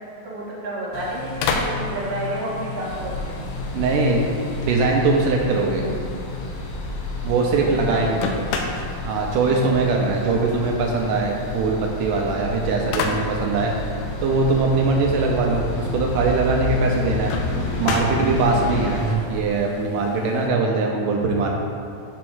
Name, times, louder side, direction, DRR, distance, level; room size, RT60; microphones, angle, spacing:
voice 1, 0.2-3.4 5.8-6.0 7.6-8.0 9.9-10.4, right 1 dB, 45° right, -7 dB, 0.8 m, -31 dB
sound 1, 0.9-20.5, left 4 dB, 80° left, 2.3 m, -33 dB
sound 2, 2.8-19.1, equal, 55° left, 2.3 m, -31 dB
voice 2, 3.7-4.2 4.6-5.8 7.2-8.1 8.8-13.7 14.2-17.3 17.8-19.0 19.3-21.5, right 3 dB, 80° right, 0 dB, 2.1 m, -21 dB
6.1 x 4.7 x 6.1 m, 2.8 s
omnidirectional pair, 4.1 m